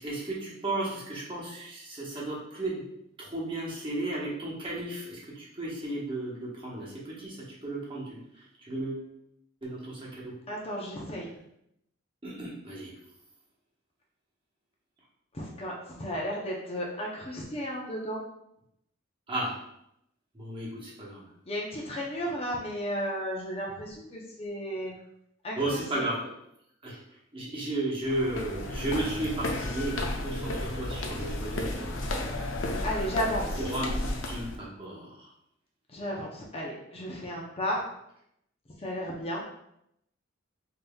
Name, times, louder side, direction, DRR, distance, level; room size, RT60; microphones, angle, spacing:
voice 1, 0.0-2.8 3.2-8.2 8.7-9.1 9.6-10.3 12.2-12.9 19.3-19.6 20.3-21.3 25.6-26.3 26.8-27.0 27.3-32.1 32.7-33.1 33.6-35.3, right 1 dB, 25° right, -5 dB, 1.0 m, -34 dB
voice 2, 10.5-11.3 15.3-15.7 16.0-18.2 21.5-24.9 25.4-25.8 32.8-33.6 35.9-37.8 38.8-39.4, equal, 30° left, -2 dB, 0.6 m, -33 dB
sound 1, 28.0-34.6, left 1 dB, 70° left, 0.6 m, -33 dB
5.2 x 2.7 x 2.2 m, 0.78 s
head